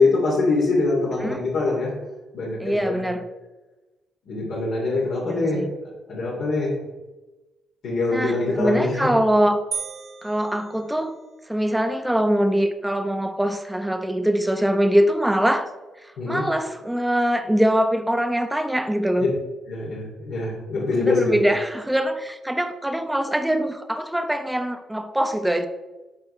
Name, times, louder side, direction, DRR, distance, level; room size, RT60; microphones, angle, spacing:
voice 1, 0.0-1.9 2.3-3.0 4.3-5.6 6.1-6.7 7.8-9.1 16.2-16.4 19.7-21.4, left 3 dB, 70° left, -6 dB, 2.8 m, -23 dB
voice 2, 2.6-3.3 5.2-5.7 8.1-9.6 10.2-11.1 11.5-15.7 16.0-19.3 21.0-25.7, equal, 5° right, 7 dB, 0.8 m, -23 dB
sound 1, 9.7-11.5, right 7 dB, 70° right, 0.9 m, -35 dB
12.5 x 4.2 x 3.3 m, 1.1 s
cardioid pair, 90°, 0 cm